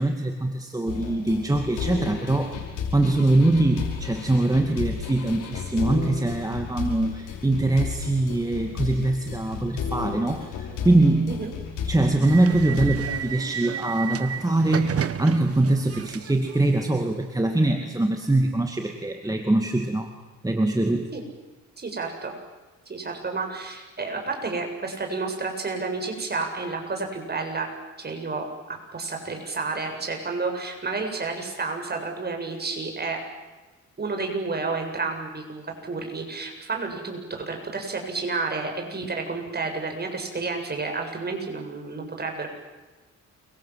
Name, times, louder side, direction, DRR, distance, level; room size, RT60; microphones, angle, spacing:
voice 1, 0.0-2.6 2.9-11.4 11.9-20.1 20.4-21.1, right 2 dB, 10° right, 4 dB, 2.4 m, -23 dB
sound 1, 0.9-13.2, left 6 dB, 85° left, 5.5 m, -33 dB
sound 2, 12.2-17.8, right 8 dB, 50° right, 1.6 m, -32 dB
voice 2, 21.8-22.3 22.9-27.7 28.0-33.2 34.0-42.5, right 3 dB, 35° right, 3 dB, 7.4 m, -31 dB
29.0 x 24.5 x 7.7 m, 1.2 s
cardioid pair, 90°, 30 cm